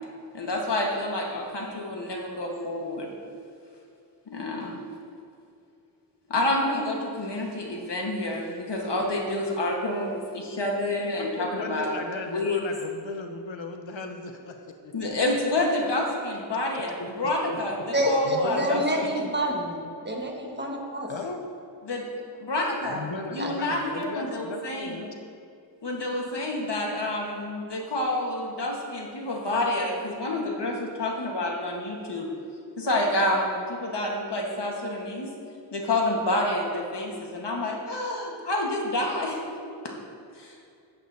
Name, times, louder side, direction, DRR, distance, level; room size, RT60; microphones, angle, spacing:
voice 1, 0.3-3.1 4.3-4.7 6.3-12.0 12.3-12.6 14.9-17.8 18.0-19.3 21.8-22.1 22.4-23.0 23.3-25.0 25.8-32.3 32.8-35.3 35.7-39.6 39.8-39.9 40.4-40.5, left 1 dB, 65° left, 0 dB, 1.5 m, -28 dB
voice 2, 10.9-14.6 14.8-14.9 17.0-17.1 17.5-17.6 18.2-18.9 19.2-19.3 21.1-21.4 22.9-25.2, left 3 dB, 90° left, 4 dB, 0.8 m, -36 dB
voice 3, 17.9-19.8 20.0-21.1 23.3-23.5, equal, 25° right, -1 dB, 1.4 m, -27 dB
11.5 x 8.4 x 2.7 m, 2.5 s
wide cardioid pair, 70°, 45 cm